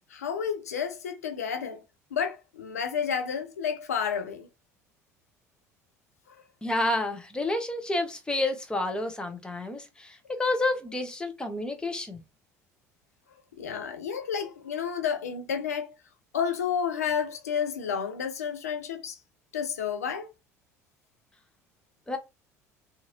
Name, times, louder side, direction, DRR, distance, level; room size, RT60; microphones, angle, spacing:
voice 1, 0.1-1.8 2.1-4.5 6.3-6.4 13.6-16.0 16.3-19.2 19.5-20.3, left 7 dB, 75° left, 0.4 m, -31 dB
voice 2, 6.6-12.2 22.1-22.2, left 2 dB, 10° left, 0.8 m, -29 dB
2.7 x 2.4 x 2.7 m
figure-of-eight pair, 60°, 8 cm